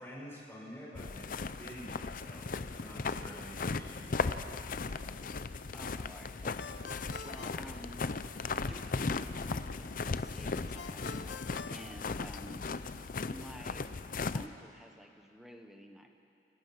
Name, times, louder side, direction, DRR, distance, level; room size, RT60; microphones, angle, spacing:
voice 1, 0.0-4.6, equal, 15° left, -4 dB, 5.9 m, -48 dB
sound 1, 0.9-14.5, left 4 dB, 50° left, 0.6 m, -37 dB
voice 2, 5.7-6.7 7.1-11.4 11.7-12.7 12.9-13.8 14.3-16.1, equal, ahead, 4 dB, 1.3 m, -52 dB
Ringtone, 6.6-8.5 10.8-12.7, left 4 dB, 90° left, 1.0 m, -48 dB
28.5 x 17.0 x 6.0 m, 2.6 s
head